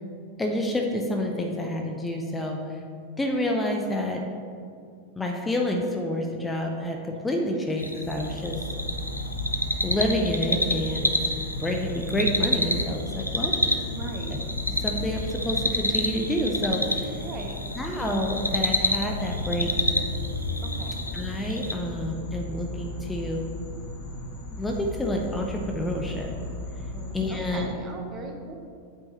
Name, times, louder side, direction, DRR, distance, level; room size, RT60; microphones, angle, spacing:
voice 1, 0.4-2.8 3.2-4.2 5.2-8.6 9.8-11.2 11.6-13.6 14.3-14.4 14.8-17.2 17.8-19.7 21.1-23.4 24.6-26.3 27.1-27.8, left 1 dB, 10° left, 2 dB, 0.6 m, -28 dB
sound 1, 7.8-21.7, left 1 dB, 90° left, 0.4 m, -29 dB
sound 2, 8.0-27.6, left 2 dB, 60° left, 1.2 m, -37 dB
voice 2, 13.9-14.4 17.2-17.5 20.6-21.0 26.9-28.5, right 3 dB, 30° right, 3 dB, 0.8 m, -39 dB
7.9 x 3.6 x 4.3 m, 2.2 s
figure-of-eight pair, 90°, 0 cm